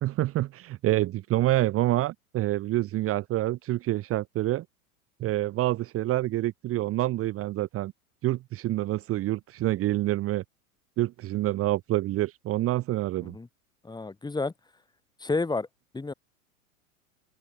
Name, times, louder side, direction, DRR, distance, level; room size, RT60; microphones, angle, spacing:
voice 1, 0.0-4.6 5.2-7.9 8.2-10.4 11.0-13.4, right 15 dB, 30° right, 1.4 m, -27 dB
voice 2, 13.8-14.5 15.2-15.7 15.9-16.1, left 3 dB, 10° left, 5.7 m, -30 dB
open air
hypercardioid pair, 100°, 43 cm